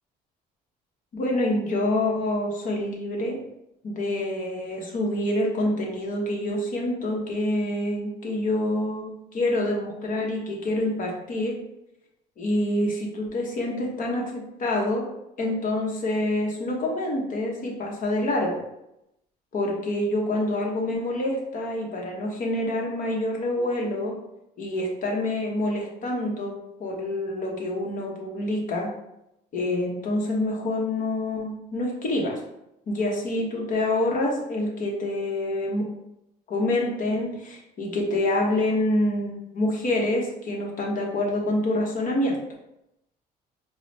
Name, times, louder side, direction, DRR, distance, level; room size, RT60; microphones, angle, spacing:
voice 1, 1.1-3.4 3.8-11.6 12.4-15.1 15.4-18.6 19.5-24.1 24.6-28.9 29.5-32.4 32.9-35.9 36.5-42.4, left 1 dB, 55° left, -1 dB, 1.0 m, -27 dB
4.7 x 2.1 x 2.7 m, 0.84 s
cardioid pair, 110°, 17 cm